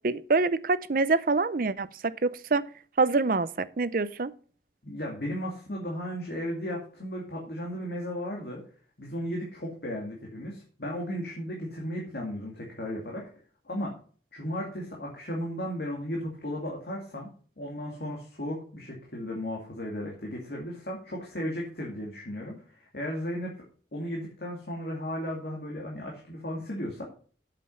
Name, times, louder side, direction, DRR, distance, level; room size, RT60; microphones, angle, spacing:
voice 1, 0.0-2.6 3.0-4.3, right 3 dB, 50° right, 0.6 m, -26 dB
voice 2, 4.8-8.6 9.0-13.2 13.7-13.9 14.3-17.3 17.6-23.5 23.9-27.1, equal, 60° left, 2.5 m, -35 dB
8.4 x 7.7 x 5.7 m
head